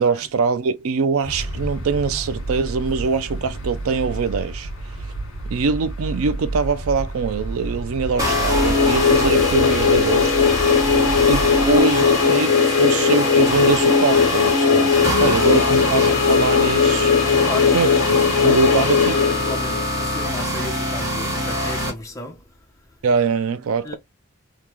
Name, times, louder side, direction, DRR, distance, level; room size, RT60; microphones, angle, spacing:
voice 1, 0.0-4.7 5.0-5.1 5.5-10.5 11.3-14.9 15.2-17.1 17.7-17.9 18.4-19.1 23.0-24.0, right 5 dB, 75° right, 0.4 m, -23 dB
sound 1, 1.2-11.8, right 1 dB, 60° left, 1.7 m, -30 dB
sound 2, 8.2-20.0, left 6 dB, 80° left, 0.6 m, -18 dB
sound 3, 8.2-21.9, equal, 15° right, 1.2 m, -24 dB
voice 2, 10.8-11.2 17.3-17.8 18.4-22.5 23.8-24.0, left 2 dB, 15° left, 0.8 m, -34 dB
3.6 x 2.3 x 3.0 m
head